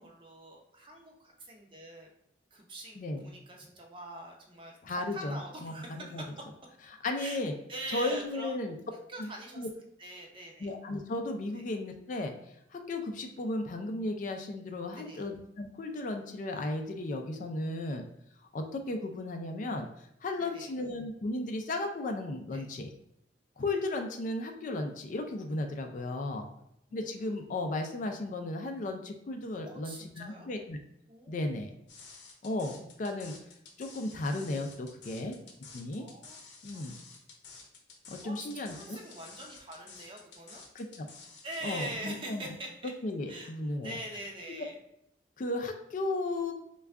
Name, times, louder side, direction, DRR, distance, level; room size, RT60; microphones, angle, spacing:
voice 1, 0.0-2.1 2.5-6.3 7.2-7.4 7.7-8.5 9.1-9.7 10.0-10.7 11.5-11.6 14.9-15.2 20.4-20.7 22.5-22.7 26.9-27.3 29.6-30.5 31.1-31.3 36.0-36.4 36.7-36.8 38.2-40.6 41.4-42.9 43.3-43.5 43.8-44.7, right 1 dB, 30° right, 0 dB, 0.6 m, -43 dB
voice 2, 3.0-3.3 4.8-6.2 7.0-7.5 7.9-8.7 9.2-9.3 9.6-9.7 10.6-12.3 12.7-18.1 18.5-19.9 20.2-22.9 23.6-26.5 26.9-30.8 31.3-31.7 32.4-33.3 33.8-35.3 35.7-36.0 36.6-36.9 38.1-39.0 40.7-41.1 41.6-42.5 43.0-44.0 45.4-46.5, left 2 dB, 45° left, 5 dB, 0.4 m, -35 dB
sound 1, 31.9-41.9, left 4 dB, 85° left, 0.7 m, -51 dB
3.4 x 2.3 x 3.5 m, 0.78 s
head